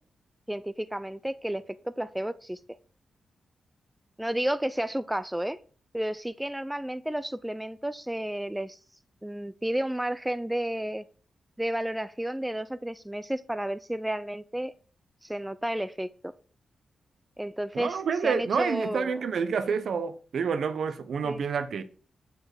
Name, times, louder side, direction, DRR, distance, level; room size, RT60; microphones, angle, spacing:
voice 1, 0.5-2.6 4.2-5.6 5.9-8.8 9.2-11.0 11.6-14.7 15.2-16.3 17.4-19.2 21.2-21.4, right 1 dB, 5° right, 0.3 m, -32 dB
voice 2, 17.7-21.8, right 6 dB, 65° right, 0.8 m, -28 dB
7.0 x 6.5 x 4.9 m
wide cardioid pair, 145°, 0 cm